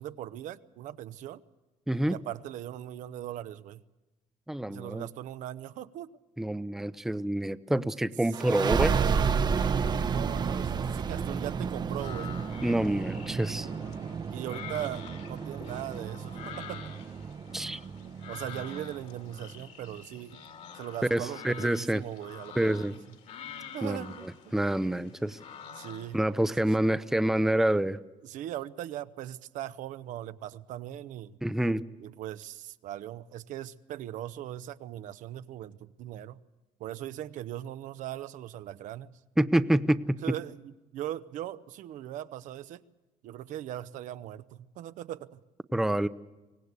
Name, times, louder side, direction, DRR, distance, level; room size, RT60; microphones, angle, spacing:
voice 1, 0.0-1.4 2.1-3.8 4.7-6.2 8.4-9.3 9.8-12.3 14.3-16.9 18.3-20.4 20.7-23.0 23.7-24.5 25.8-26.2 26.8-26.9 28.2-31.4 32.0-36.4 36.8-39.1 40.2-42.8 43.2-45.4, right 12 dB, 80° right, 13 dB, 0.8 m, -39 dB
voice 2, 1.9-2.2 4.5-5.1 6.4-8.9 12.6-13.7 17.5-17.8 21.1-22.0 22.6-22.9 23.8-25.4 26.1-28.0 31.4-31.8 39.4-40.4 45.7-46.1, right 1 dB, 5° right, 13 dB, 0.6 m, -27 dB
sound 1, 8.3-19.6, right 6 dB, 35° right, 0.8 m, -31 dB
sound 2, 11.9-26.2, left 7 dB, 60° left, 2.7 m, -47 dB
24.0 x 18.0 x 8.2 m, 1.1 s
cardioid pair, 130°, 13 cm